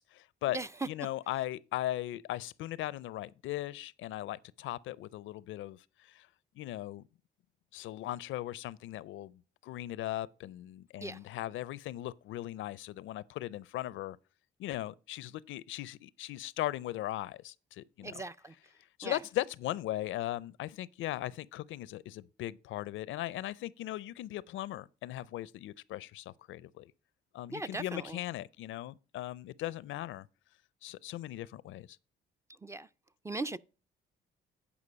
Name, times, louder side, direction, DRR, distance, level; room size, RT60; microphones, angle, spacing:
voice 1, 0.0-0.6 0.9-6.3 6.6-7.0 7.7-14.2 14.6-18.1 19.0-26.9 27.3-30.3 30.8-31.9, left 14 dB, 80° left, 0.4 m, -38 dB
voice 2, 18.0-18.6 19.0-19.2 27.5-28.2 32.5-32.9 33.2-33.6, right 2 dB, 15° right, 0.4 m, -39 dB
9.8 x 5.1 x 5.1 m
cardioid pair, 90°, 20 cm